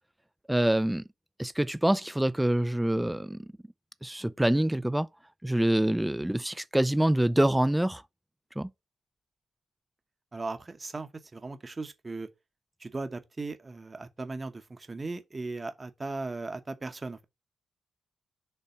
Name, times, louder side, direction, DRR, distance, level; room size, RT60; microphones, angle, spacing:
voice 1, 0.5-1.0 1.4-3.5 4.0-5.1 5.4-8.0 8.6-8.7, right 1 dB, 10° right, 0.5 m, -26 dB
voice 2, 10.3-12.3 12.8-17.2, right 3 dB, 35° right, 1.0 m, -37 dB
5.6 x 3.3 x 5.6 m
supercardioid pair, 50°, 0 cm